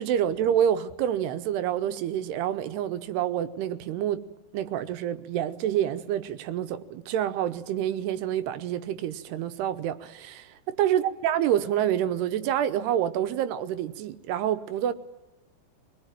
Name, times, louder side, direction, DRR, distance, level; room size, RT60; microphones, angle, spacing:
voice 1, 0.0-4.2 4.5-10.5 10.8-14.9, right 10 dB, 80° right, 2.9 m, -27 dB
23.0 x 20.5 x 9.1 m
omnidirectional pair, 4.8 m